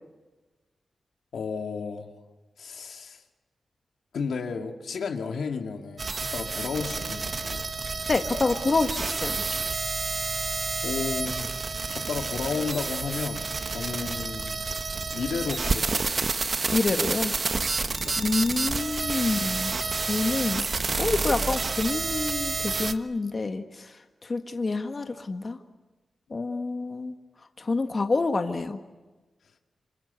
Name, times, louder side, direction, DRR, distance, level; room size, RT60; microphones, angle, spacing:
voice 1, 1.3-2.1 2.6-3.2 4.1-7.7 10.0-10.2 10.8-11.6 11.9-14.6 15.1-16.2 18.0-18.2, left 5 dB, 80° left, 4 dB, 2.1 m, -33 dB
sound 1, 6.0-22.9, right 4 dB, 50° right, 1.3 m, -29 dB
voice 2, 8.1-9.4 16.7-17.4 18.2-19.7 20.1-24.0 24.2-25.6 26.3-27.1 27.6-28.8, left 3 dB, 45° left, 6 dB, 1.7 m, -27 dB
28.0 x 25.5 x 8.2 m, 1.2 s
cardioid pair, 55°, 0 cm